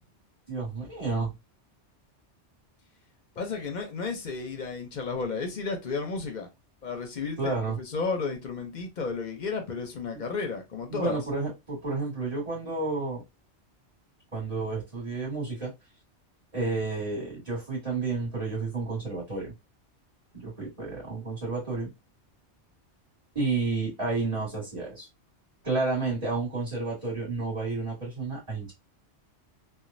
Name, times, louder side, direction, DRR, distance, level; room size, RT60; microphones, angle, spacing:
voice 1, 0.5-1.3 7.4-7.8 10.9-13.2 14.3-15.7 16.5-19.5 20.3-21.9 23.4-25.1 25.6-28.7, right 3 dB, 30° right, 1.6 m, -31 dB
voice 2, 3.4-6.5 6.8-11.2, left 4 dB, 50° left, 0.6 m, -33 dB
3.0 x 2.2 x 2.5 m
omnidirectional pair, 1.2 m